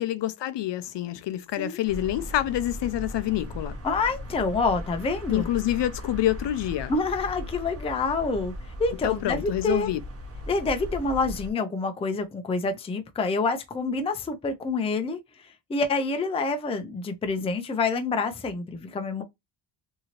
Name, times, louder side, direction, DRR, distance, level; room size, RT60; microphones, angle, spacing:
voice 1, 0.0-3.8 5.3-6.9 9.0-10.0, left 13 dB, 65° left, 0.5 m, -27 dB
sound 1, 1.8-11.5, left 1 dB, 30° right, 1.0 m, -38 dB
voice 2, 3.8-5.5 6.9-8.5 8.8-9.9 10.5-15.2 15.7-19.2, left 3 dB, 15° left, 0.3 m, -27 dB
2.8 x 2.6 x 2.8 m
cardioid pair, 130°, 46 cm